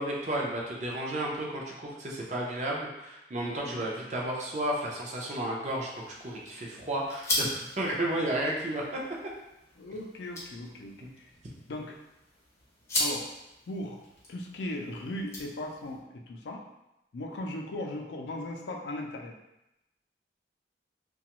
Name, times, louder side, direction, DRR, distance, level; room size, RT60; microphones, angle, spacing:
voice 1, 0.0-5.9 6.2-8.8, right 1 dB, 40° right, -3 dB, 0.5 m, -32 dB
voice 2, 3.4-3.8 9.8-11.3 11.7-12.0 13.0-13.4 13.7-14.0 14.3-16.6 17.1-19.3, left 1 dB, 70° left, 1 dB, 0.4 m, -38 dB
sound 1, 5.6-16.0, left 1 dB, 15° left, 0.6 m, -38 dB
2.8 x 2.2 x 2.9 m, 0.90 s
head